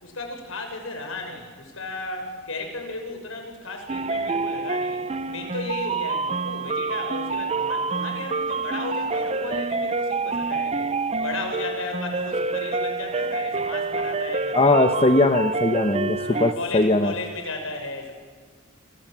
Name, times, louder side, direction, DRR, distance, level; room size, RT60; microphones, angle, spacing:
voice 1, 0.0-10.9 11.2-14.7 16.1-18.1, left 2 dB, 75° left, 4 dB, 6.0 m, -34 dB
sound 1, 3.9-16.5, right 3 dB, 30° right, 0.7 m, -27 dB
voice 2, 14.5-17.1, left 2 dB, 30° left, 7 dB, 1.1 m, -20 dB
27.0 x 25.5 x 7.6 m, 1.5 s
head